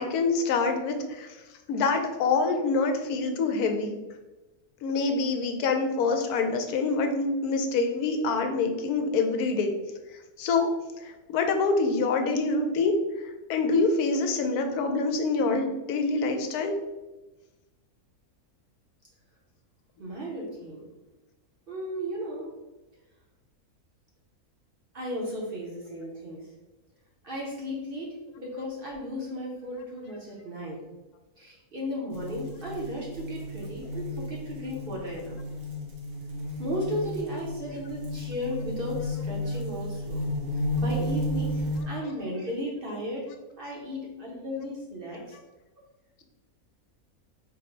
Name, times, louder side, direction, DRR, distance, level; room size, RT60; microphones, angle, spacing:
voice 1, 0.0-1.4 1.7-4.0 4.8-9.7 10.4-10.7 11.0-12.9 13.2-16.7 45.3-45.4, left 4 dB, 90° left, 5 dB, 1.1 m, -26 dB
voice 2, 20.0-20.9 21.7-22.5 24.9-26.4 27.2-30.8 31.4-35.3 36.6-40.3 40.8-43.3 43.6-45.3, equal, 50° right, -3 dB, 0.7 m, -35 dB
sound 1, 32.1-41.8, left 1 dB, 70° right, 1.2 m, -33 dB
3.8 x 2.0 x 4.3 m, 1.1 s
omnidirectional pair, 1.5 m